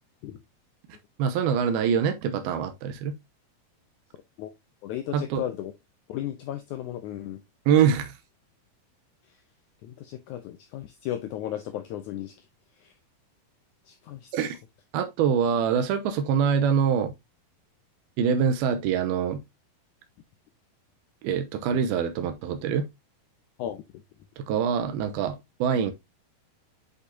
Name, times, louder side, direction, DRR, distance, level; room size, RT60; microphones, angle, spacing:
voice 1, 1.2-3.1 5.1-5.4 7.7-8.1 14.3-14.6 14.9-17.1 18.2-19.4 21.2-22.9 24.5-25.9, right 7 dB, 90° right, 2.8 m, -24 dB
voice 2, 4.8-5.7 6.1-7.4 9.8-12.3 12.8-12.9 13.9-14.5 23.6-23.8, left 12 dB, 90° left, 1.7 m, -35 dB
8.2 x 5.3 x 2.8 m
omnidirectional pair, 4.3 m